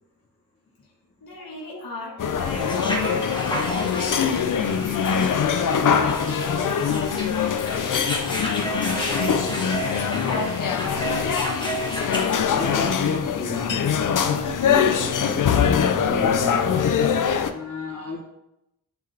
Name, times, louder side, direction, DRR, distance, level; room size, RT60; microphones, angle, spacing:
voice 1, 1.2-6.2 6.5-8.1 8.5-11.3, left 3 dB, 90° left, -3 dB, 1.4 m, -38 dB
sound 1, 2.2-17.5, left 7 dB, 60° left, 0.5 m, -23 dB
sound 2, 2.5-12.8, right 1 dB, 15° left, 1.3 m, -32 dB
voice 2, 12.5-16.9 17.5-18.2, left 2 dB, 45° left, -3 dB, 1.9 m, -32 dB
9.1 x 4.0 x 3.3 m, 0.84 s
wide cardioid pair, 125°, 35 cm